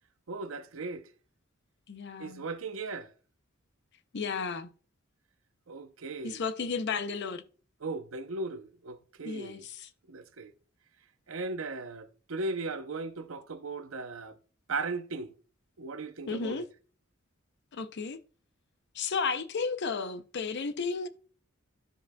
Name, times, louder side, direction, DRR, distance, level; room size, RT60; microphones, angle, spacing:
voice 1, 0.3-1.1 2.2-3.1 5.7-6.4 7.8-9.7 10.1-10.5 11.3-14.4 14.7-15.3 15.8-16.6, right 3 dB, 75° right, 0.7 m, -37 dB
voice 2, 1.9-2.5 4.1-4.7 6.2-7.4 9.2-9.9 16.3-16.7 17.7-18.2 18.9-21.1, left 5 dB, 55° left, 0.6 m, -33 dB
12.5 x 5.0 x 2.2 m
head